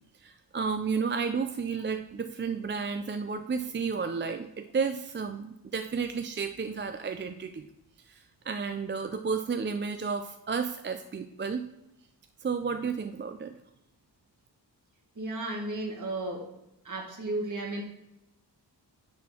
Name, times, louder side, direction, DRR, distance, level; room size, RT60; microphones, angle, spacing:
voice 1, 0.2-7.7 8.1-8.2 8.5-11.7 12.4-13.5, right 5 dB, 30° right, 8 dB, 0.3 m, -32 dB
voice 2, 15.2-16.4 16.9-17.8, right 2 dB, 45° right, 0 dB, 1.9 m, -33 dB
9.4 x 4.3 x 4.3 m, 0.88 s
wide cardioid pair, 130°, 42 cm